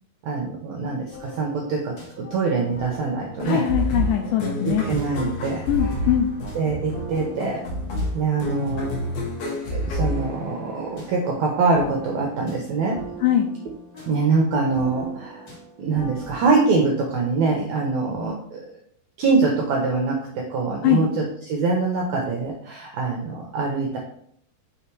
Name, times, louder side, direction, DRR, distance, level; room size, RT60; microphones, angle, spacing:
voice 1, 0.2-3.6 4.6-5.6 6.5-7.6 8.1-8.9 9.7-13.0 14.0-15.4 15.8-18.6 19.2-24.0, right 4 dB, 85° right, 0 dB, 1.6 m, -24 dB
sound 1, 1.1-16.7, equal, 40° left, 2.2 m, -42 dB
sound 2, 3.4-11.0, left 1 dB, 65° left, 2.3 m, -29 dB
voice 2, 3.5-4.8 5.7-6.3 13.2-13.5 20.8-21.0, left 11 dB, 80° left, 3 dB, 1.9 m, -21 dB
5.7 x 3.7 x 4.5 m, 0.66 s
omnidirectional pair, 4.1 m